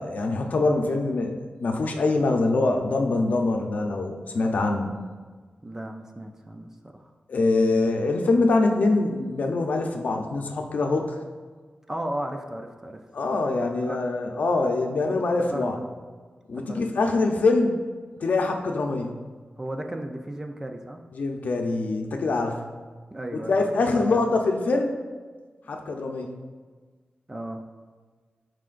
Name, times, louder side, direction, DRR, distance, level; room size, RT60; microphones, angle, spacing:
voice 1, 0.0-4.9 7.3-11.1 13.1-15.8 16.5-17.8 18.2-19.2 21.1-22.7 23.3-24.9 25.7-26.3, left 3 dB, 60° left, 3 dB, 0.7 m, -24 dB
voice 2, 5.6-7.1 11.9-13.0 13.9-14.1 15.5-15.9 16.7-16.8 19.6-21.0 23.1-24.3 27.3-27.6, right 1 dB, 15° right, 4 dB, 0.5 m, -35 dB
11.5 x 4.9 x 2.5 m, 1.5 s
wide cardioid pair, 170°, 3 cm